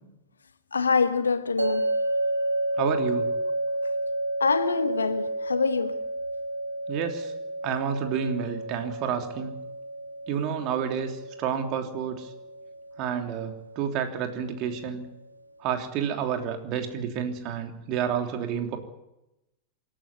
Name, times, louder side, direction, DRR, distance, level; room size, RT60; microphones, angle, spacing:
voice 1, 0.7-1.9 4.4-6.0, left 5 dB, 75° left, 1.5 m, -25 dB
sound 1, 1.6-14.7, right 1 dB, 85° right, 2.1 m, -31 dB
voice 2, 2.8-3.3 6.9-7.3 7.6-9.6 10.3-12.3 13.0-15.0 15.6-18.8, right 8 dB, 40° right, 3.2 m, -30 dB
27.0 x 11.5 x 9.7 m
figure-of-eight pair, 90°, 0 cm